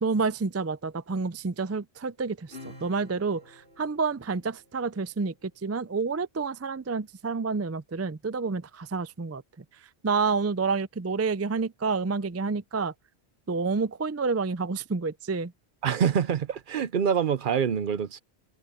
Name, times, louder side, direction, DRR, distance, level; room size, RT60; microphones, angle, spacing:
voice 1, 0.0-9.4 10.0-12.9 13.5-15.5, right 4 dB, 25° right, 0.3 m, -29 dB
Acoustic guitar / Strum, 2.5-5.4, left 2 dB, 60° left, 8.5 m, -50 dB
voice 2, 15.8-18.2, right 7 dB, 55° right, 0.7 m, -25 dB
omnidirectional pair, 1.1 m